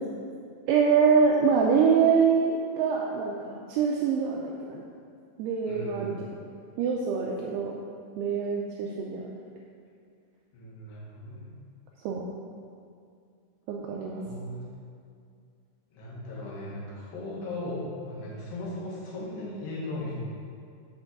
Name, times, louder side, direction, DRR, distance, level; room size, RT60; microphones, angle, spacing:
voice 1, 0.7-4.8 5.4-6.3 6.8-7.7 8.2-9.3 12.0-12.2 13.7-14.2, right 6 dB, 80° right, -1 dB, 2.6 m, -25 dB
voice 2, 5.6-6.3 10.5-11.6 14.2-14.7 15.9-20.2, left 1 dB, 80° left, -5 dB, 4.0 m, -37 dB
7.9 x 6.0 x 6.7 m, 2.3 s
omnidirectional pair, 4.9 m